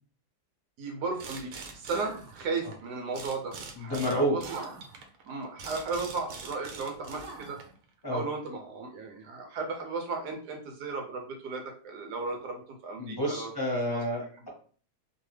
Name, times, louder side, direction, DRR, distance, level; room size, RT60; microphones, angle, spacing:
voice 1, 0.8-4.7 5.2-7.6 8.1-13.5 13.9-14.0, right 4 dB, 90° right, 2 dB, 1.4 m, -35 dB
sound 1, 1.2-2.8 3.1-7.8, right 4 dB, 65° right, 1.0 m, -43 dB
voice 2, 3.8-4.4 8.0-8.2 13.0-14.5, equal, 20° left, -4 dB, 0.9 m, -29 dB
3.2 x 2.2 x 3.2 m, 0.43 s
omnidirectional pair, 1.7 m